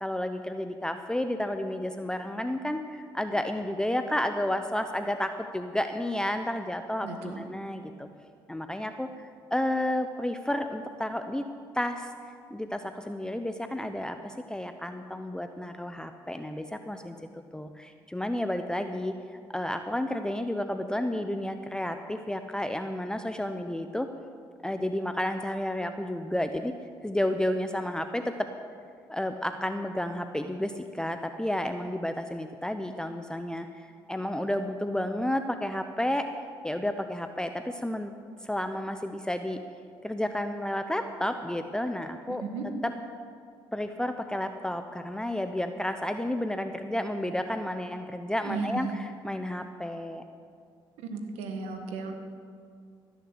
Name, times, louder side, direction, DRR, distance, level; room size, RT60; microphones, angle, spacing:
voice 1, 0.0-8.1 8.5-11.4 11.7-12.1 12.5-17.2 17.5-19.1 19.5-24.1 24.6-26.7 27.0-28.5 29.1-36.3 36.6-38.1 38.4-39.6 40.0-42.4 42.8-42.9 43.7-50.2, left 1 dB, 5° left, 7 dB, 0.7 m, -31 dB
voice 2, 7.0-7.4 42.3-42.7 48.4-48.9 51.0-52.2, right 4 dB, 85° right, 5 dB, 1.5 m, -35 dB
16.0 x 6.6 x 8.0 m, 2.2 s
supercardioid pair, 55°, 10 cm